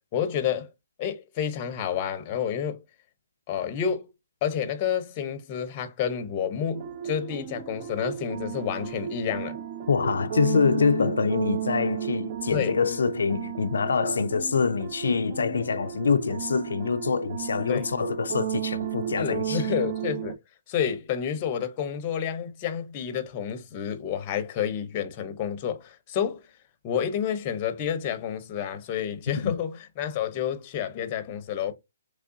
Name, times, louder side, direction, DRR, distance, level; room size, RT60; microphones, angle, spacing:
voice 1, 0.1-0.7 1.0-2.8 3.5-4.1 4.4-9.6 12.5-12.8 17.7-17.9 19.1-20.4 20.7-26.4 26.8-31.7, left 8 dB, 30° left, 0.7 m, -29 dB
sound 1, 6.7-20.3, right 10 dB, 40° right, 0.4 m, -34 dB
voice 2, 9.9-19.7 29.4-29.5, left 5 dB, 80° left, 0.3 m, -25 dB
3.5 x 3.2 x 2.6 m
hypercardioid pair, 155°, 0 cm